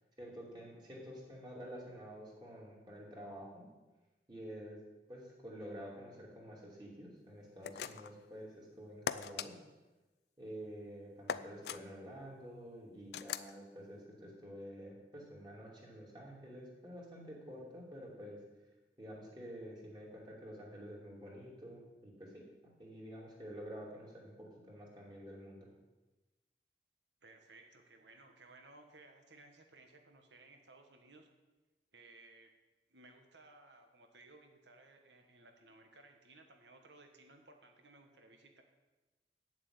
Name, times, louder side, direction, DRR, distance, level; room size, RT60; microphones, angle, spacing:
voice 1, 0.2-3.7 4.3-4.8 5.1-9.5 10.4-18.4 19.0-22.4 22.8-25.7, equal, 25° right, -3 dB, 2.9 m, -49 dB
sound 1, 7.6-8.2 9.1-9.5 11.3-11.8 13.1-13.5, left 7 dB, 65° left, 0.4 m, -39 dB
voice 2, 27.2-31.3 31.9-32.5 32.9-38.6, right 2 dB, 85° right, 4 dB, 1.5 m, -60 dB
8.9 x 7.5 x 8.0 m, 1.2 s
head